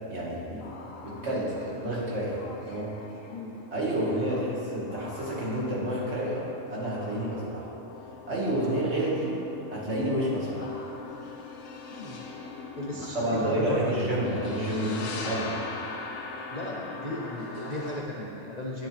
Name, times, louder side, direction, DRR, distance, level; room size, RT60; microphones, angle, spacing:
voice 1, 0.1-0.7 1.0-2.4 2.7-2.9 3.7-7.7 8.3-9.4 9.7-10.7 12.9-15.5, right 1 dB, 55° right, -6 dB, 2.3 m, -29 dB
sound 1, 0.6-18.0, left 4 dB, 70° left, 1.2 m, -41 dB
voice 2, 11.9-12.2 12.8-14.1 16.5-18.9, left 1 dB, 35° left, -3 dB, 0.8 m, -35 dB
10.5 x 9.9 x 3.5 m, 2.8 s
omnidirectional pair, 1.4 m